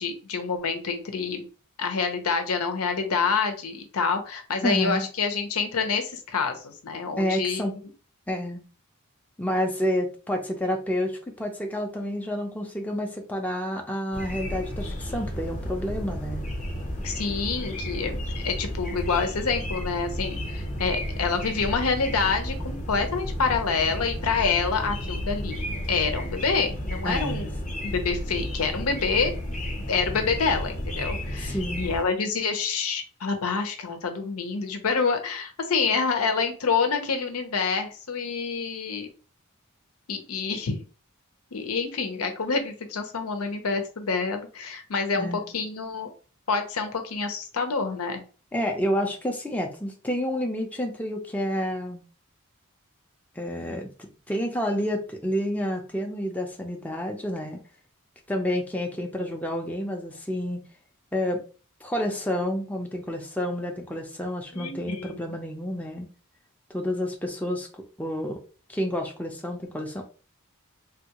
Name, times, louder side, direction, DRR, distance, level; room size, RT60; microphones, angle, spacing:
voice 1, 0.0-1.4 1.8-7.6 17.0-25.6 25.9-27.5 27.8-29.3 29.9-39.1 40.1-40.8 41.5-46.1 46.5-48.2 64.5-65.4, left 5 dB, 90° left, 6 dB, 0.7 m, -27 dB
voice 2, 4.6-5.1 7.2-7.7 8.3-8.6 9.4-16.5 27.0-27.5 31.4-31.9 45.1-45.4 48.5-52.0 53.4-57.6 58.3-60.6 61.1-61.4 61.8-66.1 66.7-67.7 68.0-68.4 68.7-70.0, equal, 5° left, 2 dB, 0.5 m, -29 dB
sound 1, 14.1-32.0, equal, 35° left, 0.8 m, -32 dB
3.5 x 2.3 x 2.8 m, 0.37 s
head